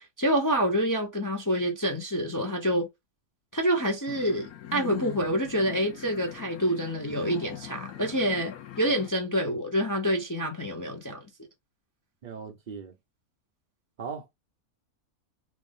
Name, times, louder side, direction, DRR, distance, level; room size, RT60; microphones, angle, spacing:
voice 1, 0.0-2.9 3.5-11.3, equal, 20° left, 0.5 m, -27 dB
sound 1, 4.1-9.1, left 12 dB, 75° left, 1.2 m, -41 dB
voice 2, 12.2-12.9 14.0-14.3, right 6 dB, 70° right, 0.4 m, -38 dB
3.4 x 2.5 x 3.5 m
omnidirectional pair, 1.6 m